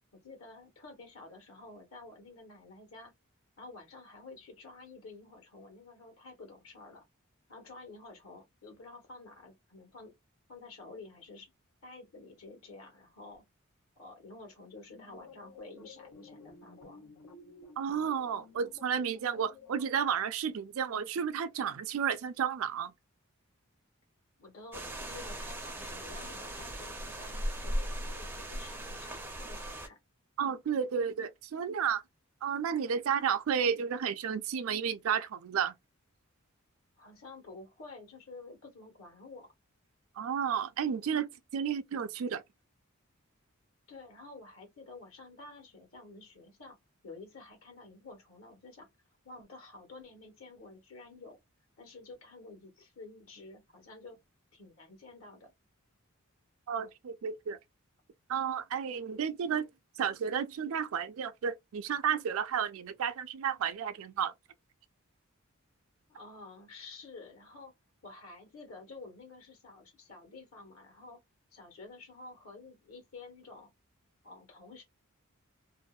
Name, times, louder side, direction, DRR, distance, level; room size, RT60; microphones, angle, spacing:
voice 1, 0.2-3.1 3.6-7.0 7.5-10.1 10.5-11.5 11.8-13.5 14.0-17.1 24.4-30.0 37.0-39.5 43.9-46.8 47.0-48.9 49.2-51.4 51.8-54.2 54.5-55.5 66.1-67.7 68.0-71.2 71.5-73.7 74.2-74.8, left 3 dB, 70° left, 1.2 m, -50 dB
sound 1, 14.9-20.1, left 2 dB, 85° left, 0.6 m, -53 dB
voice 2, 17.8-22.9 30.4-32.0 32.4-35.7 40.2-42.4 56.7-57.6 58.3-59.7 60.0-64.3, right 7 dB, 70° right, 0.4 m, -32 dB
sound 2, 24.7-29.9, equal, 10° right, 0.4 m, -38 dB
2.6 x 2.0 x 2.3 m
head